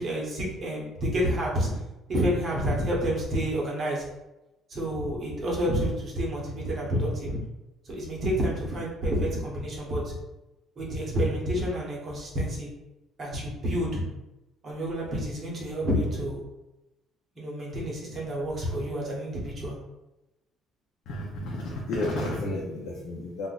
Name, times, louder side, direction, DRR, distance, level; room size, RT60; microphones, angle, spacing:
voice 1, 0.0-1.7 2.1-4.0 4.7-7.4 7.9-10.1 10.8-12.7 13.2-14.0 14.6-16.4 17.4-19.7, equal, 30° right, -4 dB, 1.1 m, -29 dB
voice 2, 21.1-23.5, left 1 dB, 70° left, -3 dB, 0.6 m, -31 dB
2.5 x 2.4 x 3.9 m, 0.96 s
cardioid pair, 145°, 0 cm